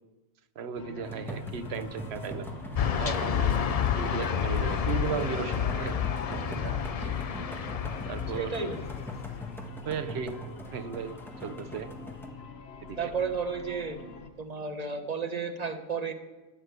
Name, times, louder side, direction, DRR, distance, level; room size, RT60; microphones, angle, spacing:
voice 1, 0.6-2.5 3.0-3.6 4.0-7.2 8.1-8.6 9.8-10.4 10.7-11.9 12.8-13.1, right 7 dB, 85° right, 1.0 m, -36 dB
sound 1, 0.7-14.3, left 4 dB, 80° left, 1.4 m, -45 dB
sound 2, 1.0-12.3, equal, ahead, 1.5 m, -41 dB
sound 3, 2.7-9.4, left 8 dB, 45° left, 0.5 m, -30 dB
voice 2, 8.3-8.8 13.0-14.0 14.4-16.1, right 5 dB, 40° right, 1.2 m, -32 dB
15.5 x 6.5 x 9.4 m
omnidirectional pair, 1.1 m